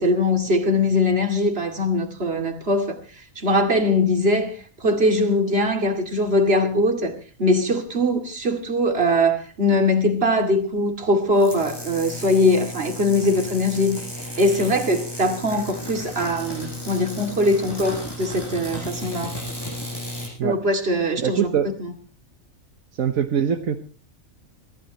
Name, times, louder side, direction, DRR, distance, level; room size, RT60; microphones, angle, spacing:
voice 1, 0.0-3.0 3.4-4.5 4.8-14.0 14.4-19.4 20.4-21.5 21.8-21.9, left 1 dB, 45° right, 2.7 m, -21 dB
sound 1, 11.3-20.3, left 1 dB, 15° left, 7.2 m, -34 dB
voice 2, 21.2-21.7 23.0-23.8, right 8 dB, 80° right, 1.5 m, -22 dB
24.5 x 15.0 x 3.0 m
omnidirectional pair, 1.4 m